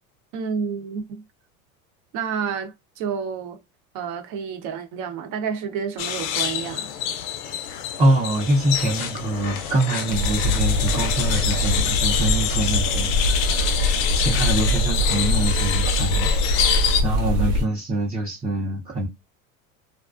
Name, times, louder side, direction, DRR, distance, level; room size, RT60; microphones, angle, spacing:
voice 1, 0.3-1.2 2.1-3.6 3.9-6.9, right 6 dB, 50° right, 0.8 m, -29 dB
sound 1, 6.0-17.0, left 9 dB, 50° left, 0.5 m, -26 dB
voice 2, 8.0-19.1, right 1 dB, 15° right, 0.6 m, -25 dB
sound 2, 8.6-13.5, left 4 dB, 85° left, 0.7 m, -38 dB
sound 3, 10.1-17.6, left 1 dB, 85° right, 1.2 m, -23 dB
2.4 x 2.1 x 2.4 m
hypercardioid pair, 90°, 43 cm